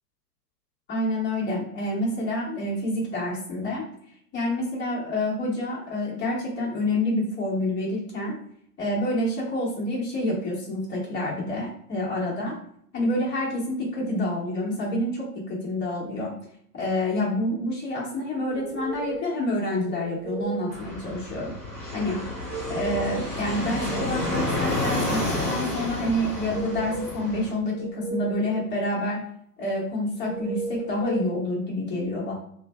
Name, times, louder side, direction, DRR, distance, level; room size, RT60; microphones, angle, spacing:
voice 1, 0.9-3.8 4.3-8.4 8.8-12.6 12.9-16.3 16.7-21.5 21.9-22.2 22.7-29.2 29.6-32.3, left 1 dB, 20° left, -5 dB, 1.2 m, -28 dB
sound 1, 18.5-19.4 19.8-20.7 22.3-23.3 23.6-24.7 26.2-27.2 27.6-28.6 30.2-31.3, right 2 dB, 50° right, 1.0 m, -35 dB
Fixed-wing aircraft airplane, 20.7-27.5, left 2 dB, 5° left, 0.4 m, -30 dB
2.5 x 2.2 x 3.1 m, 0.66 s
hypercardioid pair, 115°, 46 cm